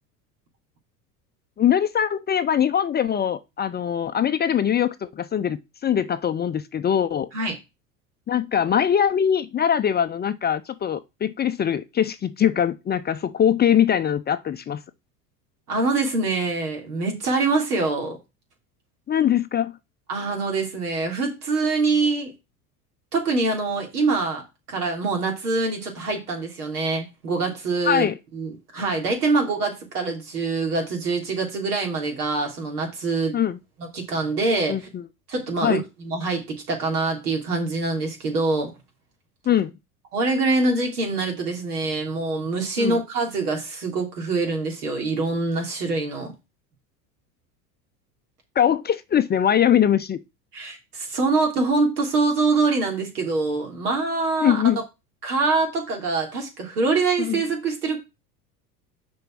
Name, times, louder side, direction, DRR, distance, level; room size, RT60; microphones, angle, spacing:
voice 1, 1.6-7.3 8.3-14.8 19.1-19.7 27.8-28.2 33.3-33.6 34.7-35.0 35.6-35.8 39.5-39.7 42.8-43.0 48.6-50.2 54.4-54.8 57.2-57.4, left 9 dB, 20° left, 0.6 m, -22 dB
voice 2, 15.7-18.2 20.1-22.3 23.1-24.4 24.7-33.4 33.8-34.9 35.3-38.7 40.1-46.3 50.5-54.8 55.2-58.0, right 3 dB, 80° right, 3.3 m, -24 dB
6.7 x 5.3 x 6.2 m
hypercardioid pair, 80°, 46 cm